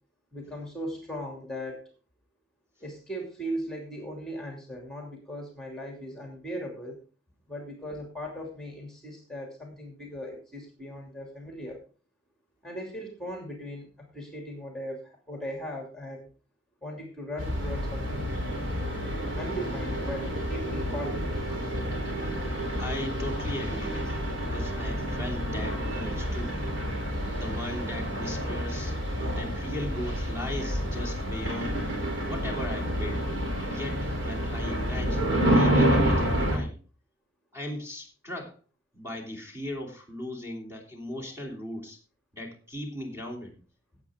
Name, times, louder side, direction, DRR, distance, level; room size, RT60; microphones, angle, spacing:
voice 1, 0.3-1.9 2.8-7.0 7.5-11.8 12.6-16.3 16.8-18.3 19.4-21.2, equal, 5° left, 1 dB, 2.7 m, -38 dB
sound 1, 17.4-36.6, equal, 70° right, 3.9 m, -29 dB
voice 2, 22.8-26.5 27.3-29.0 29.3-31.8 32.2-33.3 33.6-36.8 37.5-38.6 38.9-42.0 42.3-43.5, left 1 dB, 15° right, 0 dB, 3.0 m, -38 dB
17.0 x 8.1 x 3.6 m, 0.36 s
head